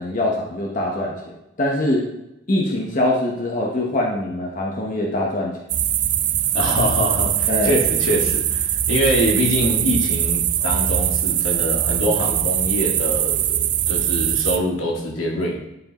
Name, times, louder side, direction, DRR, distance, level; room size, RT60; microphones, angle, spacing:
voice 1, 0.0-1.3 1.6-2.0 2.5-5.6 7.5-7.8, left 1 dB, 40° left, -2 dB, 1.0 m, -23 dB
sound 1, 5.7-14.6, right 11 dB, 40° right, 0.3 m, -21 dB
voice 2, 6.5-15.6, equal, 85° left, -1 dB, 1.9 m, -24 dB
11.0 x 4.6 x 2.9 m, 0.89 s
head